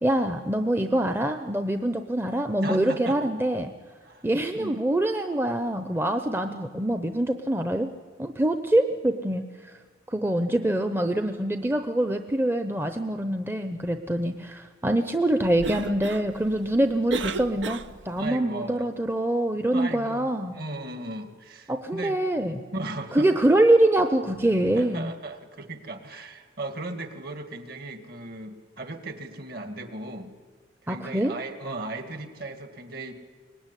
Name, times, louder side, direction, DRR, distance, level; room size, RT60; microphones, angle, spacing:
voice 1, 0.0-3.7 4.2-7.9 8.2-9.4 10.1-20.5 21.7-22.6 23.1-25.1 30.9-31.3, right 1 dB, 10° right, 7 dB, 0.8 m, -24 dB
voice 2, 2.6-3.3 4.0-4.3 4.5-4.8 18.2-18.9 19.7-22.2 22.7-23.3 24.7-30.3 30.8-33.1, right 2 dB, 50° right, 7 dB, 2.3 m, -36 dB
Cough, 15.4-18.3, right 4 dB, 75° right, 0.9 m, -36 dB
23.5 x 19.5 x 10.0 m, 1.5 s
head